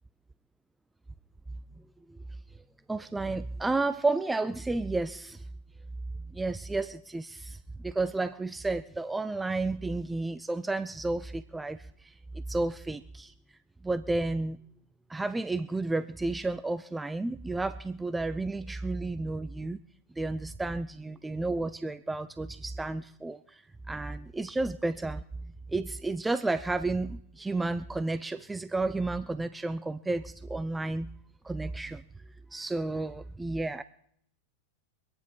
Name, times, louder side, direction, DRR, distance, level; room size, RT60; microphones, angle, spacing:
voice 1, 2.9-5.4 6.3-13.3 13.8-14.6 15.1-19.8 20.2-25.2 25.7-31.1 31.4-32.0 32.5-33.8, right 2 dB, 10° right, 14 dB, 0.5 m, -32 dB
25.0 x 9.6 x 4.5 m, 0.69 s
figure-of-eight pair, 90°, 0 cm